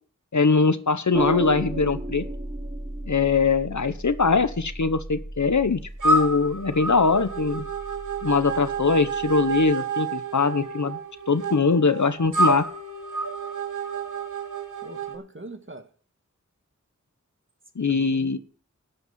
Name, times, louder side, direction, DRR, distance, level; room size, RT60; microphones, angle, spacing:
voice 1, 0.3-2.3 3.1-7.6 8.2-11.0 11.3-12.6 17.8-18.4, left 4 dB, 70° left, 1.1 m, -22 dB
sound 1, 1.1-9.7, equal, 20° right, 5.4 m, -35 dB
sound 2, 6.0-15.2, right 3 dB, 80° right, 2.7 m, -29 dB
voice 2, 14.8-15.9 17.9-18.4, right 2 dB, 40° right, 1.8 m, -42 dB
12.5 x 5.7 x 9.4 m
wide cardioid pair, 45°, 30 cm